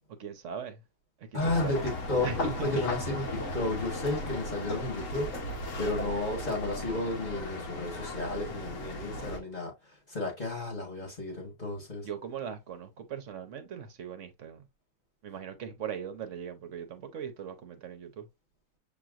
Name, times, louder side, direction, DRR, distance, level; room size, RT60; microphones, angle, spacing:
voice 1, 0.2-0.8 1.3-1.9 2.2-2.9 12.0-14.6 15.2-18.3, right 8 dB, 55° right, 0.8 m, -39 dB
voice 2, 1.3-3.3 3.5-5.3 5.8-9.7 10.1-12.1, left 2 dB, 25° left, 1.3 m, -32 dB
sound 1, 1.4-9.4, left 1 dB, 50° left, 1.1 m, -36 dB
6.9 x 3.0 x 2.4 m
omnidirectional pair, 2.0 m